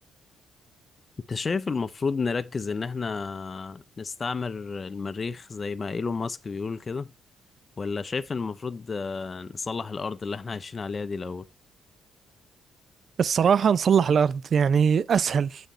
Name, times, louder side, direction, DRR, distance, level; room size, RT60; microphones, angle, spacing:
voice 1, 1.2-7.1 7.8-11.5, left 4 dB, 35° left, 0.6 m, -31 dB
voice 2, 13.2-15.7, right 7 dB, 55° right, 0.5 m, -21 dB
8.1 x 5.1 x 4.4 m
cardioid pair, 90°, 0 cm